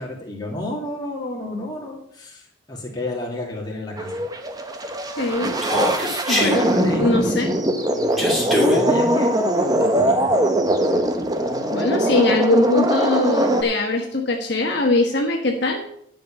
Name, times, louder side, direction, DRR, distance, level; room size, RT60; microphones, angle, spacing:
voice 1, 0.0-4.2 6.6-9.4 9.8-10.3, left 1 dB, 20° left, -2 dB, 2.6 m, -31 dB
sound 1, 4.0-13.6, right 1 dB, 20° right, 0.9 m, -21 dB
voice 2, 5.2-5.6 6.3-6.7 7.0-7.5 11.7-15.8, left 2 dB, 55° left, 2 dB, 1.3 m, -21 dB
Human voice, 5.6-6.6 8.2-8.8, left 1 dB, ahead, 2.8 m, -20 dB
11.5 x 5.3 x 7.2 m, 0.71 s
head